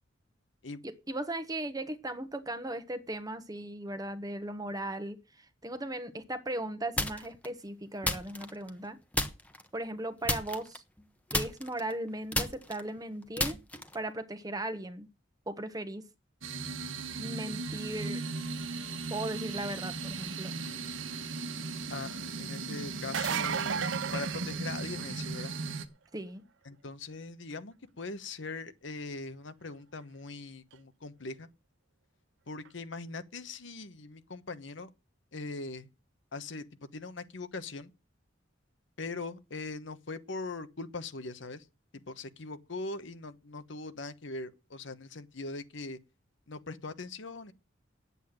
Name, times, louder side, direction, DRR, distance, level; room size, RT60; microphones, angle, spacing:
voice 1, 0.8-9.0 9.7-10.8 11.3-13.6 13.9-15.1 15.5-16.1 17.2-18.2 19.1-20.5 26.1-26.4, right 1 dB, 20° right, 1.2 m, -37 dB
sound 1, 7.0-7.5 8.0-8.9 9.1-9.7 10.2-11.0 11.3-14.1, left 1 dB, 10° left, 1.1 m, -33 dB
sound 2, 16.4-25.8, right 4 dB, 90° right, 1.4 m, -37 dB
voice 2, 21.9-25.6 26.6-31.5 32.5-34.9 35.3-35.9 36.3-37.9 39.0-41.6 41.9-46.0 46.5-47.5, left 3 dB, 70° left, 1.1 m, -41 dB
sound 3, 23.0-25.2 30.7-30.8 32.6-32.7, right 7 dB, 70° right, 0.6 m, -33 dB
9.3 x 8.3 x 9.0 m
head